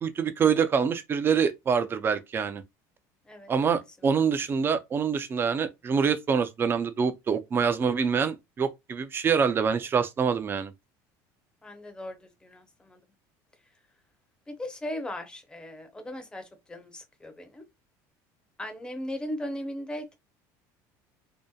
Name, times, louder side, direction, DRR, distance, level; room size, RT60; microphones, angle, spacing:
voice 1, 0.0-2.6 3.5-10.7, right 6 dB, 25° right, 0.4 m, -25 dB
voice 2, 3.3-3.8 11.6-13.0 14.5-17.7 18.6-20.2, left 1 dB, 10° left, 0.6 m, -38 dB
2.7 x 2.1 x 2.2 m
cardioid pair, 125°, 8 cm